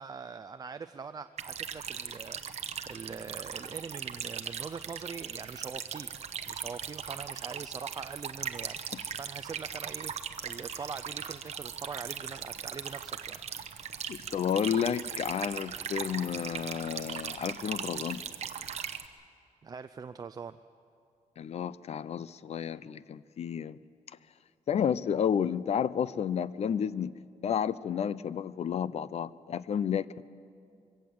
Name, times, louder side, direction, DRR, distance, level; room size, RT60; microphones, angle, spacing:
voice 1, 0.0-6.1 6.5-13.4 19.6-20.6, right 5 dB, 25° right, 10 dB, 0.4 m, -43 dB
sound 1, 1.4-19.1, right 7 dB, 50° right, 0.9 m, -39 dB
voice 2, 14.1-18.2 21.4-23.8 24.7-27.1 27.4-30.2, left 8 dB, 50° left, 18 dB, 0.5 m, -31 dB
22.5 x 17.0 x 7.8 m, 2.4 s
wide cardioid pair, 170°, 14 cm